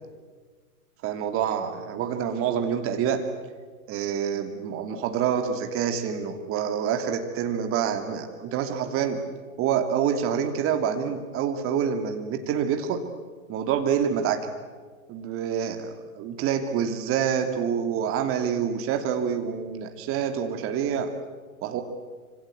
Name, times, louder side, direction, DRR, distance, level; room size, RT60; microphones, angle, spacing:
voice 1, 1.0-3.3 3.9-9.2 9.6-13.0 13.5-14.5 15.1-21.1 21.6-21.8, right 8 dB, 30° right, 6 dB, 2.9 m, -27 dB
26.0 x 26.0 x 8.4 m, 1.5 s
figure-of-eight pair, 105°, 43 cm